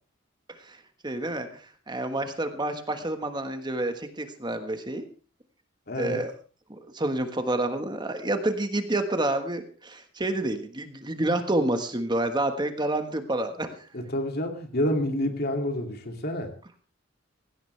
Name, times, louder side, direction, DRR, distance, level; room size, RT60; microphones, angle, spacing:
voice 1, 1.0-5.0 6.0-6.3 6.9-13.7, right 1 dB, 20° right, 7 dB, 1.4 m, -28 dB
voice 2, 5.9-6.2 13.9-16.5, left 1 dB, 50° left, 5 dB, 2.5 m, -28 dB
17.5 x 16.5 x 3.4 m, 0.37 s
head